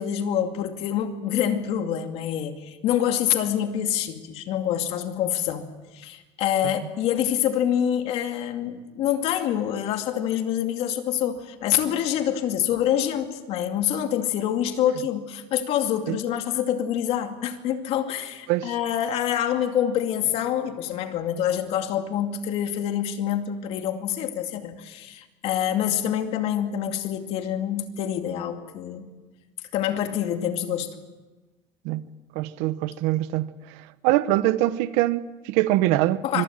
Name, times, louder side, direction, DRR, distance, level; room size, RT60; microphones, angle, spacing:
voice 1, 0.0-29.0 29.7-31.0 36.2-36.4, left 10 dB, 60° left, 2.4 m, -26 dB
voice 2, 32.3-33.5 34.0-36.4, right 15 dB, 80° right, 1.1 m, -23 dB
25.5 x 22.5 x 7.5 m
cardioid pair, 155°, 12 cm